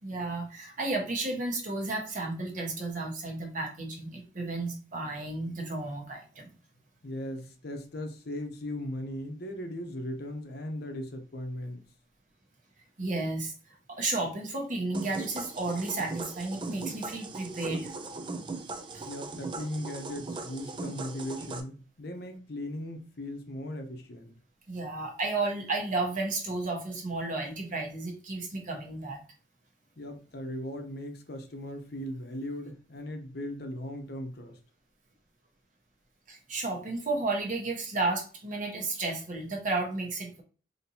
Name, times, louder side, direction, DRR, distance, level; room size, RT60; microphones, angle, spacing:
voice 1, 0.0-6.5 13.0-17.9 18.9-19.0 24.7-29.2 36.3-40.4, right 2 dB, 45° right, 1 dB, 1.0 m, -33 dB
voice 2, 7.0-11.8 19.0-24.3 30.0-34.6, left 1 dB, 60° left, 5 dB, 0.7 m, -38 dB
sound 1, 14.9-21.6, right 3 dB, 25° right, 0.4 m, -39 dB
4.2 x 2.9 x 2.7 m, 0.37 s
head